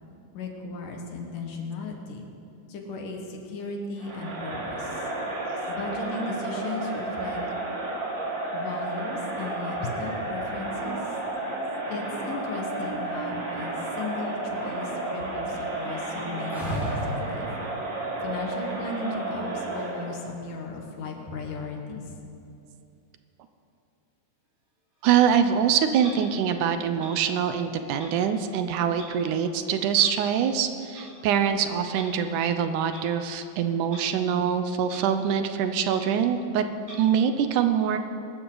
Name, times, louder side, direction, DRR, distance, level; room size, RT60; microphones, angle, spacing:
voice 1, 0.3-2.3 2.7-5.1 5.7-7.4 8.5-11.0 11.9-17.5 18.2-22.1, left 3 dB, 80° left, 2 dB, 3.2 m, -36 dB
Crowd, 4.0-20.2, right 2 dB, 60° right, 3.9 m, -32 dB
sound 1, 16.5-17.4 20.0-20.6, equal, ahead, 3.7 m, -32 dB
Clock, 25.0-25.2 26.0-26.2 27.0-27.1 27.9-28.1 28.9-29.1 29.9-30.1 30.8-31.1 31.9-32.1 32.9-33.1 33.8-34.0 34.4-34.5 34.8-35.0 35.4-35.5 35.8-36.0 36.8-37.0, right 1 dB, 30° right, 4.2 m, -44 dB
voice 2, 25.0-36.7 37.0-38.0, right 8 dB, 75° right, 9 dB, 2.1 m, -24 dB
23.5 x 12.5 x 3.9 m, 2.6 s
omnidirectional pair, 3.7 m